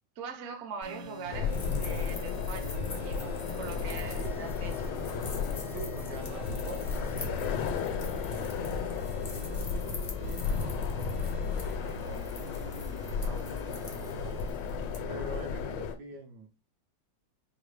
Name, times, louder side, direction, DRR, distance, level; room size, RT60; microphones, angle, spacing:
voice 1, 0.2-5.0, right 5 dB, 55° right, 0.9 m, -42 dB
sound 1, 0.8-14.5, left 2 dB, 90° right, 2.8 m, -43 dB
sound 2, 1.3-15.9, left 6 dB, 75° left, 1.2 m, -34 dB
sound 3, 1.4-15.0, left 4 dB, 60° left, 0.4 m, -47 dB
voice 2, 5.6-9.6 10.2-14.4 15.1-16.5, right 3 dB, 70° right, 1.3 m, -46 dB
4.8 x 2.1 x 3.2 m
omnidirectional pair, 2.0 m